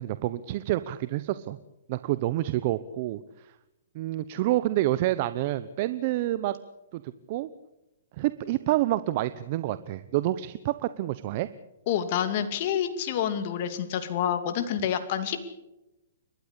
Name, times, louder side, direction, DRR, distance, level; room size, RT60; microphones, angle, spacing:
voice 1, 0.0-1.6 1.9-3.5 3.9-6.5 6.9-7.0 7.3-7.5 8.2-11.5, right 15 dB, 45° right, 14 dB, 0.9 m, -28 dB
voice 2, 11.9-15.5, left 9 dB, 45° left, 8 dB, 2.5 m, -28 dB
29.5 x 13.0 x 8.3 m, 0.94 s
hypercardioid pair, 140°, 0 cm